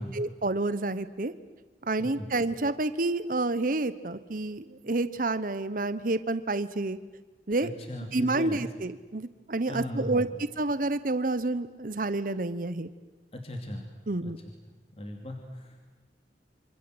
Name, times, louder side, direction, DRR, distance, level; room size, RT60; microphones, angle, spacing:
voice 1, 0.0-1.3 1.8-7.0 7.5-7.7 8.1-10.3 10.6-12.9 14.1-14.4, right 2 dB, 50° right, 13 dB, 1.0 m, -29 dB
voice 2, 7.6-8.6 9.7-10.2 13.3-13.8 14.2-14.3 15.0-15.8, left 1 dB, 35° left, 3 dB, 2.9 m, -37 dB
27.0 x 26.0 x 7.9 m, 1.3 s
head